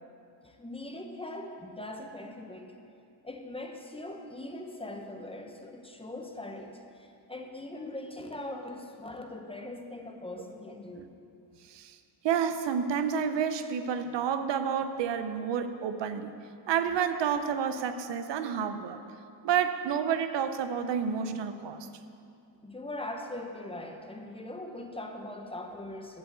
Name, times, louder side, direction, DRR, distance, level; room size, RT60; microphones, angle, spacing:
voice 1, 0.4-2.8 3.2-11.1 22.6-26.2, left 1 dB, 15° left, 3 dB, 0.6 m, -41 dB
voice 2, 11.6-12.0 12.2-16.3 16.7-19.0 19.4-21.9, right 7 dB, 80° right, 10 dB, 0.7 m, -30 dB
11.5 x 5.4 x 7.9 m, 2.6 s
wide cardioid pair, 160°, 43 cm